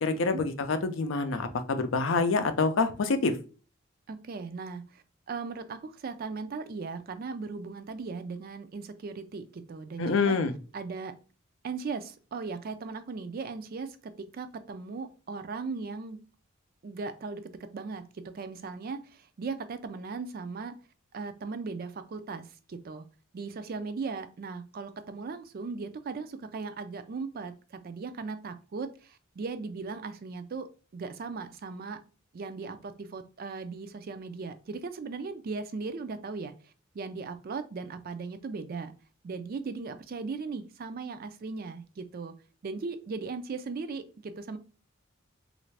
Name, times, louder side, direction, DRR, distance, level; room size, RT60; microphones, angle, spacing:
voice 1, 0.0-3.4 10.0-10.5, left 4 dB, 65° left, 9 dB, 0.5 m, -26 dB
voice 2, 4.1-10.4 10.7-11.2 11.6-16.2 16.8-20.8 21.1-23.1 23.3-32.0 32.3-36.5 36.9-38.9 39.2-42.4 42.6-44.6, right 4 dB, 45° right, 10 dB, 0.4 m, -38 dB
3.2 x 2.5 x 3.2 m, 0.36 s
head